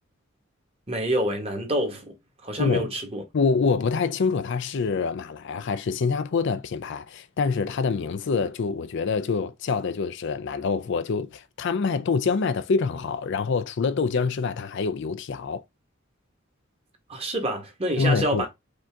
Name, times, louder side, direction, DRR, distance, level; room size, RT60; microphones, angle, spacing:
voice 1, 0.9-2.1 2.4-3.2 17.1-18.5, right 1 dB, 30° right, 1.4 m, -27 dB
voice 2, 2.6-2.9 3.3-15.6 18.0-18.5, left 5 dB, 60° left, 0.4 m, -26 dB
5.1 x 2.8 x 3.5 m
head